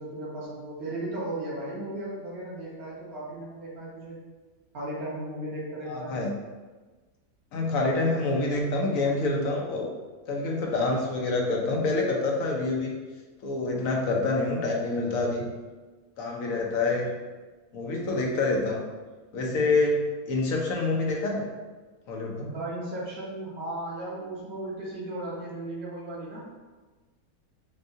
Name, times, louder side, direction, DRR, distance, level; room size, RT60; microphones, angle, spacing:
voice 1, 0.0-4.2 4.7-6.2 22.4-26.5, right 1 dB, 80° right, -6 dB, 1.8 m, -36 dB
voice 2, 5.8-6.3 7.5-9.9 10.3-12.9 13.4-15.4 16.2-17.1 17.7-18.8 19.3-21.4 22.1-22.5, left 2 dB, 70° left, 0 dB, 1.1 m, -27 dB
6.1 x 2.3 x 2.7 m, 1.3 s
omnidirectional pair, 1.5 m